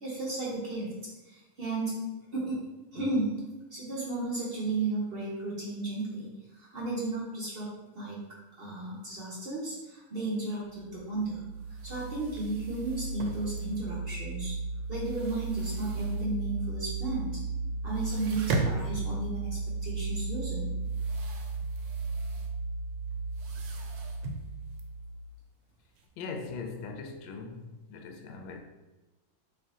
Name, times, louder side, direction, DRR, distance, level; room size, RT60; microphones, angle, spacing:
voice 1, 0.0-1.0 1.3-2.6 2.9-3.5 3.7-8.3 8.6-11.4 11.8-14.5 14.9-17.4 17.8-20.7, right 2 dB, 55° right, 0.6 m, -34 dB
sound 1, 10.8-25.3, right 3 dB, 60° left, 1.1 m, -35 dB
sound 2, 10.8-10.9 11.2-11.3 11.5-14.2 14.5-16.6 16.9-17.0 17.3-17.5 17.8-26.1, right 3 dB, 75° right, 1.2 m, -40 dB
voice 2, 26.2-28.6, left 4 dB, 80° left, 1.3 m, -40 dB
4.5 x 2.6 x 3.6 m
omnidirectional pair, 2.1 m